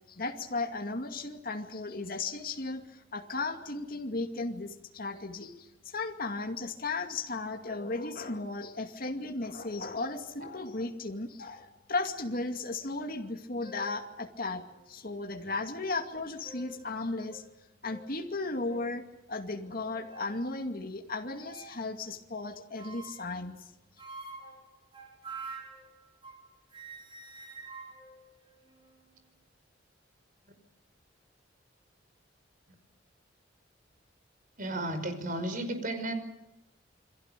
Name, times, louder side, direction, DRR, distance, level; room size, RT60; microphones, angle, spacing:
voice 1, 0.1-17.4 17.8-19.0 19.3-23.7, left 3 dB, 50° left, 3 dB, 2.4 m, -35 dB
sound 1, 13.2-13.3 13.6-14.0 14.8-14.9 16.1-16.9 17.3-17.5 17.9-18.1 18.7-19.0 19.6-20.4 21.4-21.8 22.8-23.4 24.0-26.5 26.7-29.0, right 3 dB, 30° right, 5.0 m, -47 dB
voice 2, 34.6-36.1, right 1 dB, 50° right, 8 dB, 5.4 m, -33 dB
28.5 x 23.5 x 6.9 m, 0.91 s
head